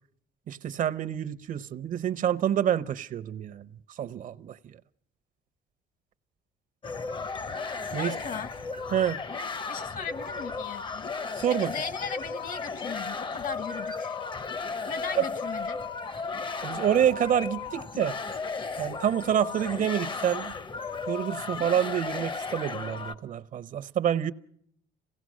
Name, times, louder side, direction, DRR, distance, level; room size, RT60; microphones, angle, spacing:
voice 1, 0.5-3.7 4.0-4.6 7.9-8.1 8.9-9.2 11.3-11.7 15.2-15.3 16.6-18.2 18.8-20.5 21.1-24.3, right 10 dB, 50° right, 0.7 m, -27 dB
sound 1, 6.8-23.2, left 4 dB, 30° left, 0.7 m, -35 dB
voice 2, 8.0-8.5 9.7-11.1 11.6-14.2 14.9-15.8, left 6 dB, 55° left, 1.2 m, -37 dB
27.0 x 17.5 x 6.3 m
cardioid pair, 110°, 17 cm